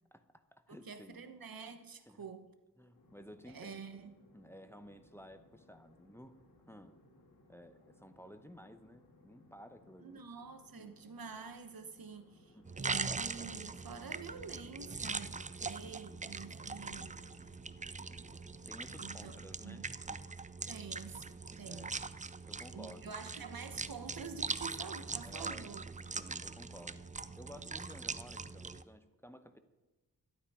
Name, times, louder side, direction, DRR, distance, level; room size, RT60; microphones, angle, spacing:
voice 1, 0.1-1.2 2.1-2.3 2.8-3.8 4.3-7.0 7.5-10.2 10.8-11.0 12.5-12.7 15.8-16.2 18.6-20.2 21.6-22.0 22.5-23.1 25.2-25.8 26.1-27.0 27.4-29.6, equal, 5° left, 0.8 m, -54 dB
voice 2, 0.7-2.5 3.5-4.2 10.0-17.6 19.0-19.4 19.6-19.9 20.7-21.3 21.6-22.0 22.7-25.8, right 5 dB, 70° right, 1.1 m, -48 dB
sound 1, 2.9-18.7, left 2 dB, 85° left, 2.8 m, -65 dB
sound 2, 12.7-28.8, right 4 dB, 20° right, 0.4 m, -42 dB
12.5 x 11.5 x 4.9 m
wide cardioid pair, 85°, 36 cm